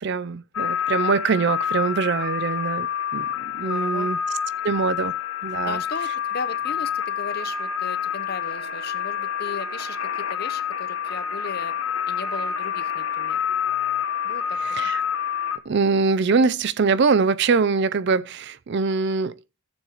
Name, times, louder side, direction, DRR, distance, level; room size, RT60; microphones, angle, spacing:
voice 1, 0.0-2.9 3.1-4.2 4.6-5.1 5.4-5.8 14.6-15.0 15.7-19.4, right 4 dB, 50° right, 0.4 m, -23 dB
sound 1, 0.5-15.6, left 8 dB, 75° left, 1.1 m, -27 dB
voice 2, 3.6-4.1 5.6-11.7 12.1-13.4 14.2-14.9, left 4 dB, 45° left, 0.8 m, -36 dB
15.5 x 7.1 x 3.0 m
head